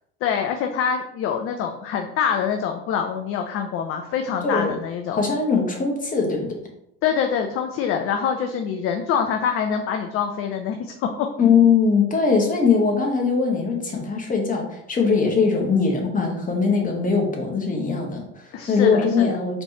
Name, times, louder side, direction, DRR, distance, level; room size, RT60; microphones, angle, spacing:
voice 1, 0.2-5.2 7.0-11.3 18.5-19.4, left 7 dB, 40° left, 4 dB, 0.5 m, -25 dB
voice 2, 4.4-4.8 5.1-6.5 11.4-19.6, left 5 dB, 25° left, 1 dB, 1.3 m, -21 dB
4.2 x 3.3 x 2.9 m, 0.77 s
hypercardioid pair, 80°, 34 cm